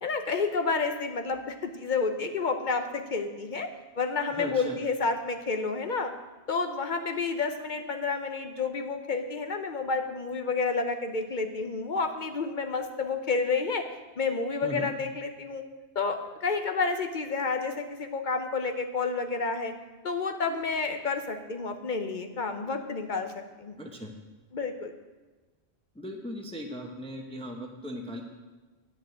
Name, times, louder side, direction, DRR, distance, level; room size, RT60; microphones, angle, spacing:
voice 1, 0.0-3.7 4.0-6.1 6.5-13.8 14.2-15.6 15.9-19.7 20.0-23.3 23.6-23.8 24.5-24.9, left 4 dB, 50° left, 6 dB, 0.9 m, -30 dB
voice 2, 4.3-4.8 14.6-14.9 23.8-24.1 26.0-28.2, equal, 5° left, 1 dB, 0.8 m, -37 dB
9.2 x 6.0 x 7.8 m, 1.2 s
omnidirectional pair, 1.1 m